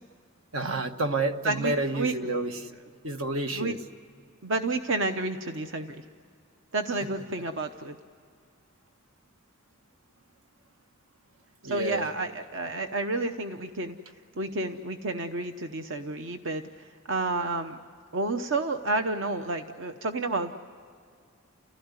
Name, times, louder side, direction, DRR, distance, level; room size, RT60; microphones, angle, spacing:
voice 1, 0.5-2.5 3.0-3.8 11.6-12.1, right 2 dB, 75° right, 7 dB, 1.4 m, -29 dB
voice 2, 1.4-2.1 3.5-3.8 4.4-6.0 6.7-8.0 11.6-14.0 14.4-16.6 17.1-17.8 18.1-20.5, right 2 dB, 60° right, 7 dB, 0.8 m, -30 dB
29.5 x 16.5 x 9.7 m, 2.3 s
head